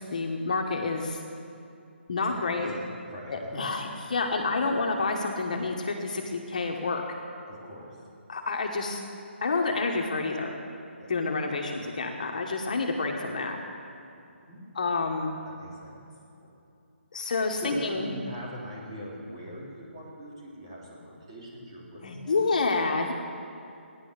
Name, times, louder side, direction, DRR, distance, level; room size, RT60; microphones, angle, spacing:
voice 1, 0.1-1.2 2.1-2.8 3.3-7.0 8.3-9.0 9.4-10.5 11.1-13.6 14.8-15.3 17.1-18.1 22.0-23.1, left 3 dB, 40° left, 2 dB, 1.2 m, -28 dB
voice 2, 2.3-3.6 7.5-8.0 11.0-11.1 14.1-14.6 15.4-16.0 17.6-22.5, equal, 25° right, -5 dB, 3.4 m, -42 dB
16.5 x 10.5 x 6.6 m, 2.7 s
hypercardioid pair, 180°, 7 cm